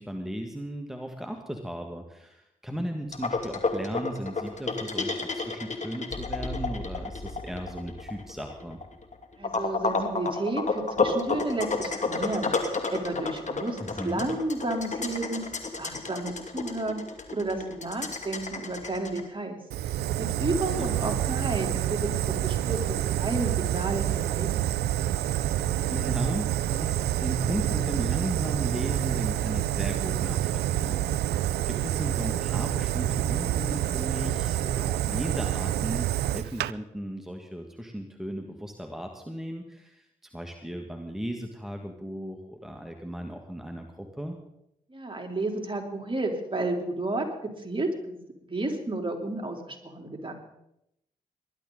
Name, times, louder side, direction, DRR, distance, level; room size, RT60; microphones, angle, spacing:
voice 1, 0.0-8.8 13.8-14.3 20.8-21.2 25.9-44.4, equal, ahead, 3 dB, 2.0 m, -36 dB
sound 1, 3.1-19.2, left 3 dB, 45° left, 2.4 m, -30 dB
voice 2, 9.4-15.5 15.8-17.0 17.3-19.6 20.2-24.7 44.9-48.2 48.5-50.3, right 2 dB, 30° right, 2 dB, 3.6 m, -32 dB
Fire, 19.7-36.7, right 12 dB, 85° right, 0.4 m, -28 dB
20.0 x 11.5 x 4.0 m, 0.82 s
supercardioid pair, 40°, 16 cm